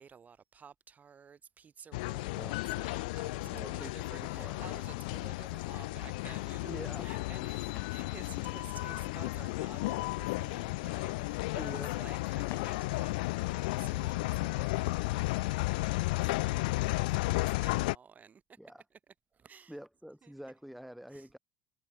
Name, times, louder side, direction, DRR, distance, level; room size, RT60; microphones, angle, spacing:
voice 1, 0.0-19.8 20.2-20.4 21.1-21.3, right 6 dB, 35° right, 3.0 m, -54 dB
sound 1, 1.9-17.9, left 22 dB, 80° left, 0.3 m, -33 dB
sound 2, 2.9-3.0 3.5-14.8 15.1-15.4 15.8-15.9, left 16 dB, 60° left, 0.8 m, -53 dB
voice 2, 3.4-4.7 6.6-7.1 11.6-11.9 18.6-18.8 19.7-21.4, equal, ahead, 1.2 m, -46 dB
hypercardioid pair, 70°, 5 cm